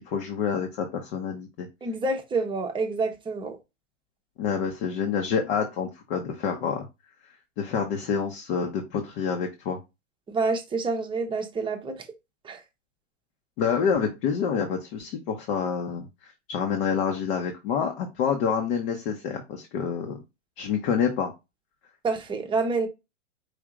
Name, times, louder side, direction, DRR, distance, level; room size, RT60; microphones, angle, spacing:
voice 1, 0.1-1.7 4.4-6.9 7.6-9.8 13.6-20.2 20.6-21.3, left 6 dB, 50° left, 1.1 m, -27 dB
voice 2, 1.8-3.6 10.3-12.0 12.4-12.6 22.0-22.9, right 3 dB, 15° right, 0.8 m, -28 dB
5.0 x 2.7 x 3.7 m
hypercardioid pair, 115°, 37 cm